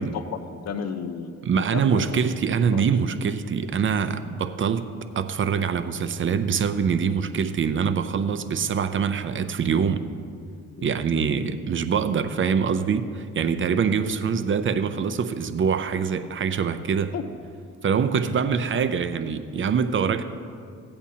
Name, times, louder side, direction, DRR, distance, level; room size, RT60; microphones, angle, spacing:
voice 1, 0.0-2.2 2.7-3.0 10.8-10.9 17.1-17.3, left 6 dB, 60° left, 8 dB, 0.8 m, -33 dB
voice 2, 1.4-4.9 5.2-10.1 10.8-17.1 17.8-20.2, right 6 dB, 40° right, 10 dB, 0.5 m, -24 dB
16.0 x 8.6 x 2.8 m, 2.2 s
cardioid pair, 90°, 30 cm